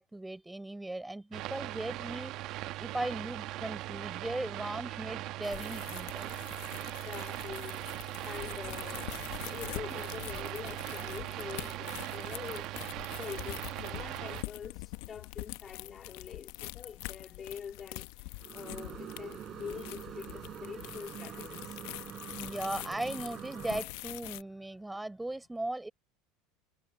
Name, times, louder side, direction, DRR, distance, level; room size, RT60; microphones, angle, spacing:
voice 1, 0.0-6.3 22.4-25.9, right 2 dB, 5° right, 5.7 m, -38 dB
sound 1, 1.3-14.4, right 16 dB, 55° right, 1.1 m, -39 dB
sound 2, 5.4-24.4, left 22 dB, 70° left, 0.8 m, -45 dB
voice 2, 6.8-12.8 13.1-21.9, left 7 dB, 30° left, 2.9 m, -45 dB
sound 3, 18.4-23.8, right 10 dB, 40° right, 4.8 m, -45 dB
supercardioid pair, 120°, 0 cm